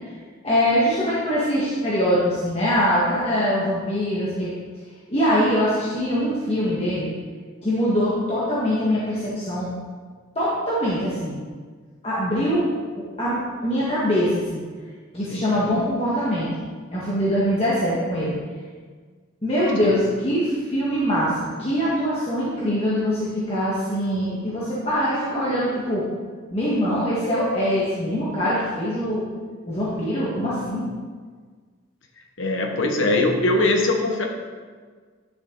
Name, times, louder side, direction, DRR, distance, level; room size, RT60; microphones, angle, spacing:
voice 1, 0.4-4.5 5.1-7.1 7.6-9.7 10.4-11.4 12.0-12.6 13.2-14.6 15.1-16.5 16.9-18.3 19.4-21.3 21.6-26.0 26.5-29.3 29.7-30.8, equal, 30° left, -9 dB, 1.8 m, -23 dB
voice 2, 32.4-34.3, left 2 dB, 70° left, 2 dB, 1.3 m, -21 dB
11.0 x 7.0 x 4.0 m, 1.5 s
head